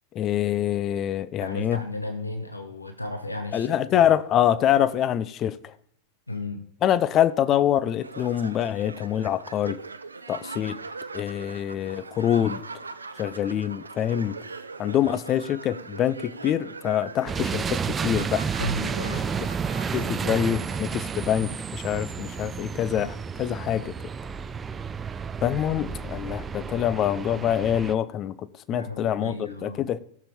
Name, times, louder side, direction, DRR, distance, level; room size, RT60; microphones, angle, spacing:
voice 1, 0.1-1.8 3.5-5.7 6.8-9.8 10.3-10.8 11.1-12.6 13.2-14.4 14.8-18.5 19.9-23.9 25.4-30.0, left 10 dB, 30° left, 0.6 m, -25 dB
voice 2, 1.4-4.1 6.3-6.6 18.6-19.3 28.7-29.9, left 1 dB, 85° left, 1.0 m, -34 dB
sound 1, 8.0-20.8, right 4 dB, 75° right, 0.6 m, -41 dB
sound 2, 17.3-27.9, right 6 dB, 20° right, 0.5 m, -31 dB
16.0 x 7.1 x 4.3 m
figure-of-eight pair, 90°, 0 cm